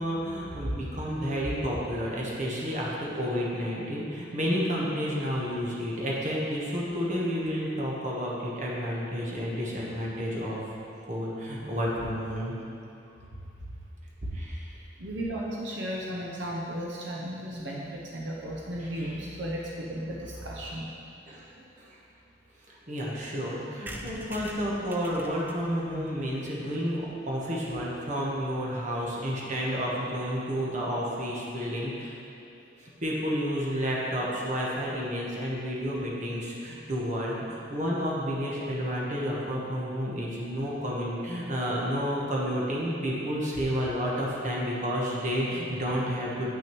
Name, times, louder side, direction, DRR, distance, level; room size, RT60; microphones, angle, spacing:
voice 1, 0.0-10.6 11.1-12.5 14.3-14.8 18.8-19.1 21.3-21.4 21.8-21.9 22.9-32.1 32.8-46.6, equal, 40° right, -4 dB, 1.2 m, -30 dB
voice 2, 15.0-20.9, equal, 80° right, -3 dB, 0.7 m, -35 dB
sound 1, 23.9-27.5 28.0-28.1 28.3-28.4 28.6-28.7 28.9-29.1, right 1 dB, 10° right, 0.4 m, -45 dB
8.6 x 5.9 x 3.1 m, 2.6 s
head